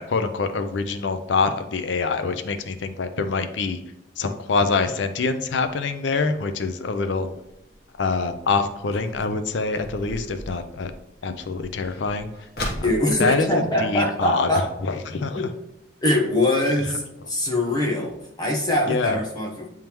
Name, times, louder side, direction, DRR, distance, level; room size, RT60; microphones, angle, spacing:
voice 1, 0.0-3.8 4.2-7.3 8.0-10.9 11.2-12.3 12.8-12.9 13.2-14.5 14.8-15.4 18.9-19.2, left 4 dB, 75° left, 9 dB, 0.5 m, -25 dB
sound 1, 7.3-14.7 15.0-15.1 15.4-15.7 16.2-16.3 16.9-17.0 17.3-17.4 17.7-17.8, left 1 dB, 55° left, 1.3 m, -39 dB
voice 2, 12.8-14.6 15.3-15.5 16.0-19.7, left 1 dB, 20° left, 0 dB, 1.0 m, -23 dB
8.9 x 3.6 x 3.0 m, 0.87 s
head